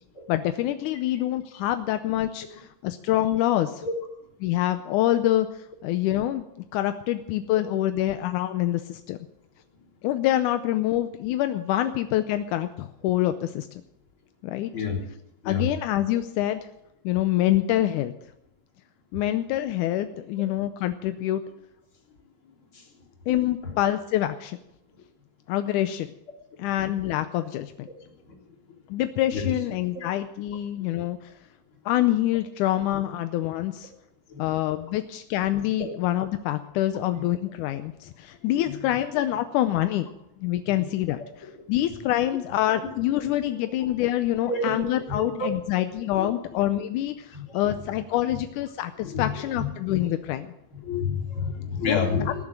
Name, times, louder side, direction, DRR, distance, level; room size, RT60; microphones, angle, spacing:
voice 1, 0.3-3.9 4.4-5.5 5.8-6.4 6.7-9.2 10.0-13.7 14.4-14.7 15.5-16.7 17.1-18.1 19.1-21.4 23.3-24.6 25.5-26.1 26.6-27.9 28.9-31.3 31.9-33.9 34.4-40.1 40.4-41.2 41.7-50.5 51.9-52.4, left 13 dB, 80° left, 10 dB, 1.8 m, -26 dB
voice 2, 28.0-28.3 29.3-29.6 29.9-30.0 30.8-30.9 34.3-34.5 35.8-35.9 37.1-37.2 38.6-38.9 40.6-40.7 43.6-43.7 44.5-45.5 46.2-46.3 47.3-47.7 49.0-50.1 50.8-52.4, left 4 dB, 35° left, -2 dB, 3.9 m, -30 dB
19.0 x 7.3 x 8.9 m, 0.80 s
omnidirectional pair, 4.2 m